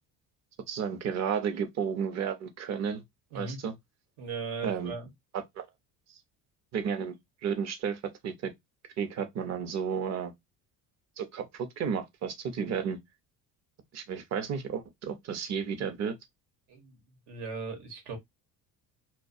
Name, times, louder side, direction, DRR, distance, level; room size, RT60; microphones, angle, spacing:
voice 1, 0.7-3.0 3.3-3.7 4.6-4.9 5.3-5.7 6.7-7.1 7.4-8.5 9.0-10.3 11.2-13.0 13.9-16.2, right 7 dB, 40° right, 0.6 m, -32 dB
voice 2, 4.2-5.1 16.7-16.9 17.3-18.2, right 4 dB, 85° right, 1.1 m, -38 dB
2.3 x 2.2 x 2.5 m
cardioid pair, 125°, 40 cm